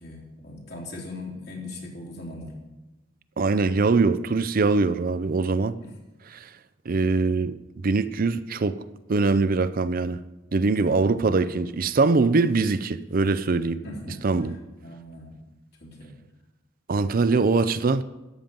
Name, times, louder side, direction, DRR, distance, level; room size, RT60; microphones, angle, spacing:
voice 1, 0.0-2.6 5.8-5.9 10.8-11.2 13.8-14.2 14.8-15.3 15.8-16.1, left 2 dB, 60° left, 3.1 m, -39 dB
voice 2, 3.4-5.8 6.3-6.5 6.9-8.8 9.1-10.2 10.5-13.8 14.2-14.6 16.9-18.0, right 3 dB, 50° right, 0.5 m, -22 dB
13.0 x 8.9 x 5.3 m
head